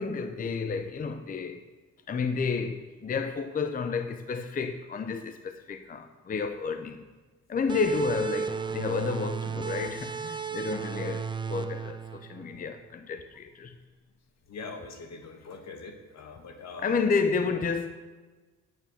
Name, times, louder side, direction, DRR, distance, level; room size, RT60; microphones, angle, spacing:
voice 1, 0.0-1.6 2.1-7.0 7.5-13.8 16.8-17.9, left 5 dB, 30° left, 0.6 m, -31 dB
sound 1, 7.7-13.0, right 6 dB, 15° right, 0.6 m, -34 dB
voice 2, 14.5-17.0, left 4 dB, 60° left, 1.7 m, -43 dB
9.2 x 7.0 x 7.2 m
cardioid pair, 90°, 30 cm